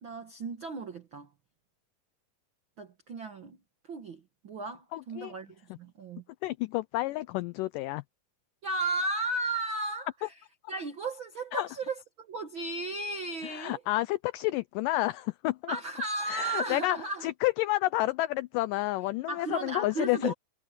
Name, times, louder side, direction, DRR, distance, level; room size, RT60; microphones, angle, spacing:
voice 1, 0.0-1.3 2.8-3.6 3.9-6.2 8.6-10.3 10.7-13.8 15.7-17.3 19.3-20.3, right 3 dB, 70° right, 1.1 m, -35 dB
voice 2, 4.9-5.3 6.4-8.0 11.5-11.7 13.4-15.8 16.3-20.3, left 18 dB, 90° left, 1.9 m, -30 dB
omnidirectional pair, 4.3 m